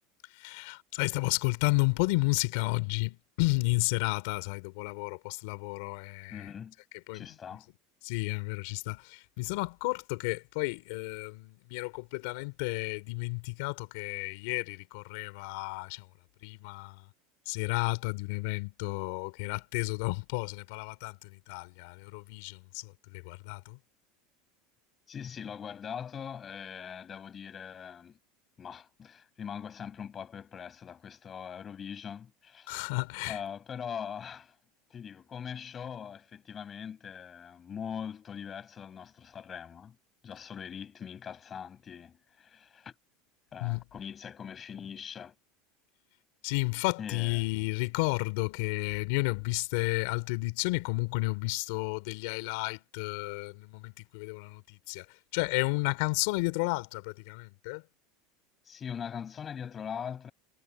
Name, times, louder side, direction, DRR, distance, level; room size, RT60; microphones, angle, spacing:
voice 1, 0.4-6.5 6.9-7.3 8.0-16.0 16.4-17.0 17.5-23.8 32.7-33.4 43.6-43.8 46.4-55.0 55.3-57.8, left 25 dB, 60° left, 4.0 m, -32 dB
voice 2, 6.3-6.8 7.1-7.7 25.1-28.2 28.6-32.9 33.3-34.6 34.9-40.0 40.2-42.9 43.5-45.4 47.0-47.6 58.6-60.3, left 7 dB, 20° left, 7.8 m, -42 dB
supercardioid pair, 170°, 0 cm